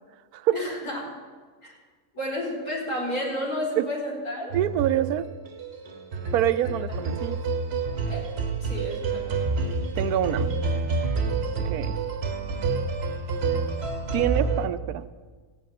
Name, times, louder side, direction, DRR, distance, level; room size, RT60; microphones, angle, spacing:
voice 1, 0.5-1.0 1.6-1.7 2.1-4.5 8.0-8.3 8.6-9.3, left 1 dB, 80° left, -5 dB, 4.9 m, -31 dB
sound 1, 4.5-14.7, right 4 dB, 50° right, 1.1 m, -28 dB
voice 2, 4.5-5.3 6.3-7.4 10.0-10.5 11.7-12.0 14.1-15.0, right 12 dB, 90° right, 13 dB, 1.1 m, -25 dB
15.5 x 5.3 x 9.3 m, 1.4 s
omnidirectional pair, 1.5 m